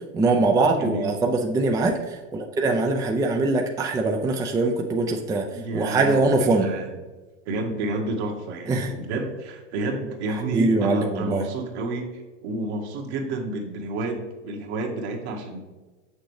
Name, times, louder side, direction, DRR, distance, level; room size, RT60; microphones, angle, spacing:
voice 1, 0.1-2.0 2.3-5.5 5.7-6.7 8.7-8.9 10.5-11.4, right 3 dB, 10° right, 2 dB, 0.4 m, -22 dB
voice 2, 0.8-1.1 5.5-6.9 7.4-15.6, right 2 dB, 60° right, 2 dB, 1.6 m, -30 dB
6.8 x 6.4 x 3.2 m, 1.3 s
hypercardioid pair, 110°, 37 cm